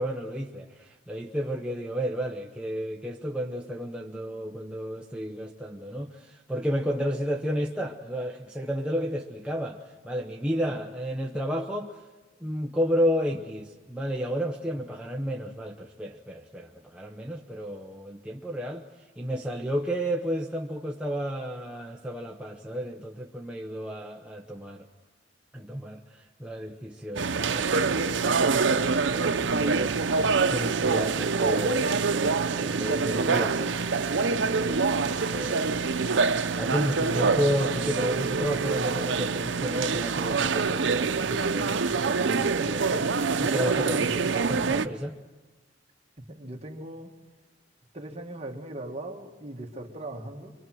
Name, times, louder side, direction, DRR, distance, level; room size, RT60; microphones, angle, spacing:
voice 1, 0.0-12.0 12.4-18.8 19.2-24.9 25.5-34.6 35.1-35.8 36.6-45.2, equal, 5° right, 0 dB, 0.9 m, -32 dB
sound 1, 27.2-44.9, right 4 dB, 90° right, 0.8 m, -25 dB
voice 2, 46.3-47.1 47.9-50.5, right 1 dB, 35° right, 2 dB, 2.0 m, -39 dB
25.0 x 24.0 x 6.3 m, 1.2 s
head